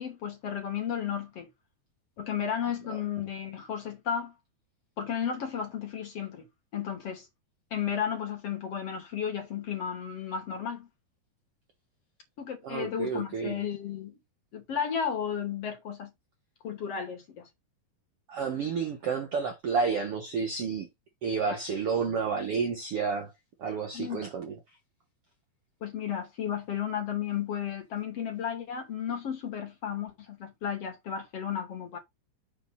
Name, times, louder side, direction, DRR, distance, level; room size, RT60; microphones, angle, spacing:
voice 1, 0.0-1.5 2.2-4.3 5.0-6.4 6.7-7.3 7.7-10.9 12.4-14.1 14.5-16.1 16.6-17.5 21.5-21.6 23.9-24.2 25.8-32.0, left 8 dB, 40° left, 2.9 m, -33 dB
voice 2, 12.6-13.6 18.3-20.9 21.2-23.3 23.6-24.6, right 5 dB, 90° right, 1.3 m, -30 dB
7.9 x 4.1 x 5.7 m
omnidirectional pair, 4.7 m